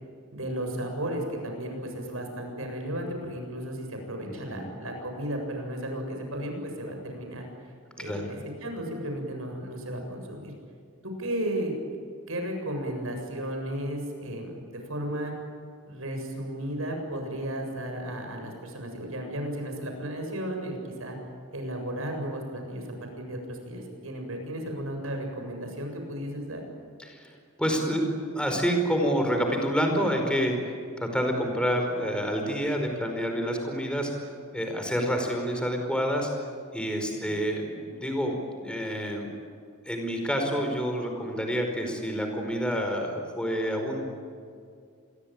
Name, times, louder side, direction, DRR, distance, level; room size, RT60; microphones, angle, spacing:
voice 1, 0.3-7.4 8.0-10.5 11.0-11.7 12.3-15.3 15.8-21.2 21.5-22.8 23.2-26.6 37.1-37.3, right 1 dB, 75° right, 3 dB, 7.5 m, -34 dB
voice 2, 27.0-36.5 36.7-39.3 39.8-44.0, equal, 5° left, 3 dB, 4.9 m, -28 dB
27.5 x 22.0 x 9.0 m, 2.3 s
head